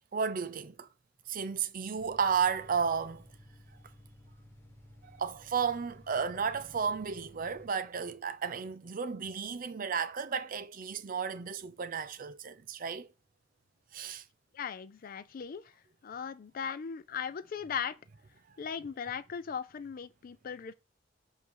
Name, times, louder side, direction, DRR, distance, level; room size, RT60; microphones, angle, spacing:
voice 1, 0.1-0.9 1.3-3.2 5.0-13.1 13.9-14.2, right 6 dB, 50° right, 0.6 m, -33 dB
sound 1, 1.9-7.7, left 1 dB, 15° left, 1.2 m, -56 dB
voice 2, 14.5-15.7 16.0-18.0 18.6-20.7, left 7 dB, 50° left, 0.4 m, -38 dB
7.4 x 2.7 x 4.7 m
head